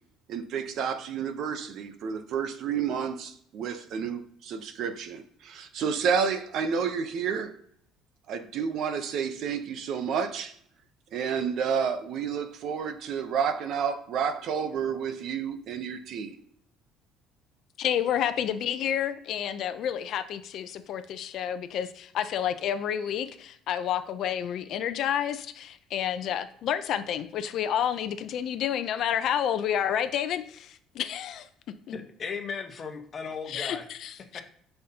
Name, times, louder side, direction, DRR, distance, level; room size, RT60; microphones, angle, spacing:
voice 1, 0.3-7.6 8.3-10.5 11.1-16.4, right 7 dB, 55° right, 0.8 m, -30 dB
voice 2, 17.8-31.5 33.5-34.4, left 9 dB, 50° left, 0.6 m, -30 dB
voice 3, 31.9-33.9 34.3-34.4, left 5 dB, 30° left, 1.1 m, -36 dB
12.0 x 5.6 x 2.9 m
cardioid pair, 150°, 0 cm